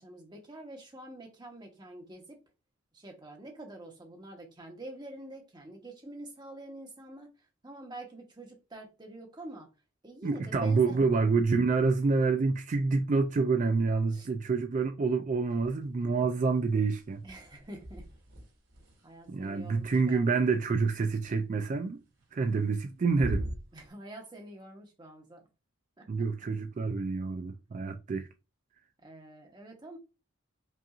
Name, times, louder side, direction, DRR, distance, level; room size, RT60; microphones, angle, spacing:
voice 1, 0.0-2.4 2.9-7.3 7.6-9.7 10.0-11.0 14.1-14.3 17.2-18.0 19.0-20.3 23.7-25.4 26.0-26.1 29.0-30.0, right 1 dB, 20° right, 1.0 m, -46 dB
voice 2, 10.2-17.2 19.3-22.0 22.3-23.5 26.1-28.3, right 4 dB, 40° right, 0.3 m, -27 dB
sound 1, 15.5-16.2 16.5-20.6 22.2-22.8 23.1-23.9, equal, 65° right, 2.5 m, -42 dB
5.4 x 2.6 x 2.4 m
head